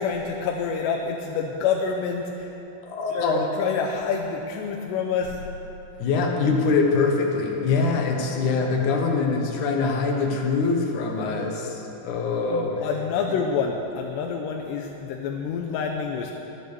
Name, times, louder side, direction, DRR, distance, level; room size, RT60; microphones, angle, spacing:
voice 1, 0.0-2.6 3.1-5.4 11.3-11.5 12.8-16.3, left 6 dB, 90° left, 1 dB, 3.0 m, -27 dB
voice 2, 2.8-3.5 6.0-12.8, left 4 dB, 65° left, 1 dB, 2.2 m, -24 dB
13.5 x 11.5 x 6.8 m, 3.0 s
omnidirectional pair, 4.8 m